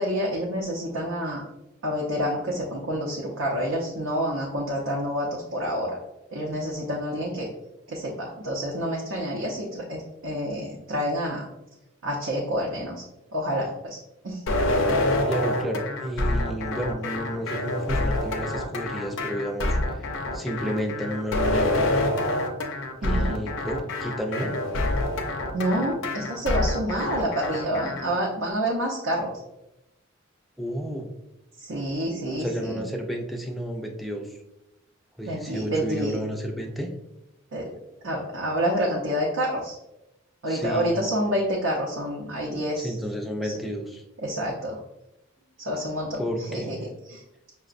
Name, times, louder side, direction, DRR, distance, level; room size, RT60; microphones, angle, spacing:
voice 1, 0.0-1.4 1.8-6.0 6.3-7.5 7.9-11.5 12.0-13.0 13.3-14.0 14.2-14.4 23.0-23.4 25.5-29.3 31.6-32.9 35.3-36.2 37.5-37.7 38.0-39.8 40.4-42.9 43.4-43.5 44.2-44.8 45.6-47.2, equal, 75° right, -3 dB, 0.6 m, -28 dB
sound 1, 14.5-28.1, left 1 dB, 65° left, 0.5 m, -26 dB
voice 2, 15.2-20.1 20.3-21.8 23.0-24.5 30.6-31.1 32.3-34.4 35.2-36.9 40.5-41.0 42.8-44.0 46.2-46.7, equal, ahead, 2 dB, 0.3 m, -31 dB
5.6 x 2.1 x 2.5 m, 0.91 s
head